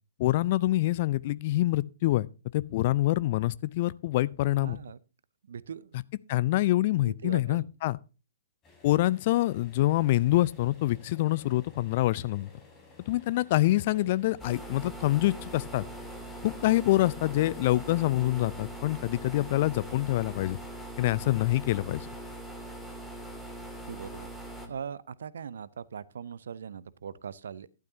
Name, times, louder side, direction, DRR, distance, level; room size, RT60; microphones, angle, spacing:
voice 1, 0.2-2.3 2.5-4.8 6.3-8.0 8.8-12.5 13.1-15.9 16.4-20.6 21.0-22.1, left 16 dB, 45° left, 0.5 m, -26 dB
voice 2, 4.6-5.0 5.5-6.0 7.0-7.7 23.9-24.3 24.7-27.7, right 7 dB, 60° right, 0.6 m, -40 dB
sound 1, 8.6-20.8, left 3 dB, 20° left, 4.3 m, -55 dB
sound 2, 14.4-24.7, right 1 dB, 5° left, 2.2 m, -42 dB
12.0 x 12.0 x 2.7 m
figure-of-eight pair, 115°, 0 cm